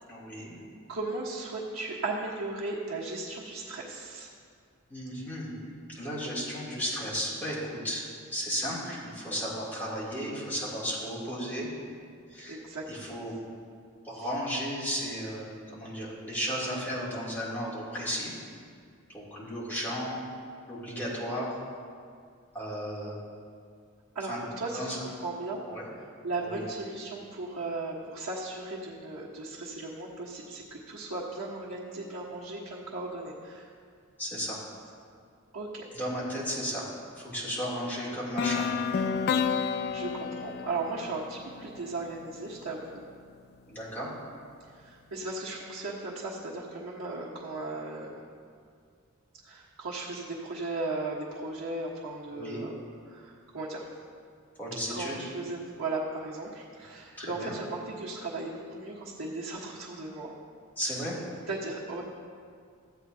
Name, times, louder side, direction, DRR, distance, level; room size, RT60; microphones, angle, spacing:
voice 1, 0.1-0.6 4.9-5.6 5.9-11.7 12.3-13.3 14.0-18.3 19.1-20.2 20.7-21.6 22.5-23.2 24.3-24.4 24.7-25.0 25.7-25.9 26.4-26.6 34.2-34.6 35.9-36.8 37.2-38.7 43.7-44.1 52.3-52.6 54.6-55.3 57.2-57.5 60.8-61.2, equal, 10° left, -8 dB, 2.9 m, -34 dB
voice 2, 0.9-4.3 12.5-12.8 14.2-14.3 16.3-16.4 24.1-25.6 26.2-33.7 35.5-35.8 39.9-43.0 44.7-48.2 49.4-52.7 53.1-53.9 54.9-60.3 61.5-62.0, right 2 dB, 85° right, -8 dB, 1.3 m, -36 dB
sound 1, 38.4-42.3, left 6 dB, 50° left, 0.3 m, -30 dB
14.5 x 8.6 x 2.8 m, 2.2 s
head